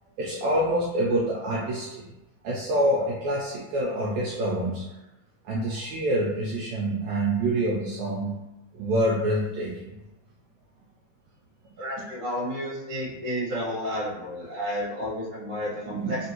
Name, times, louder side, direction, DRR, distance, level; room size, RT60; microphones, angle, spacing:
voice 1, 0.2-2.0 2.4-4.9 5.5-8.3 8.7-9.9 15.9-16.3, right 1 dB, 75° right, -5 dB, 1.7 m, -26 dB
voice 2, 11.8-16.3, equal, 40° right, -7 dB, 1.2 m, -31 dB
4.4 x 3.4 x 2.9 m, 0.99 s
omnidirectional pair, 3.7 m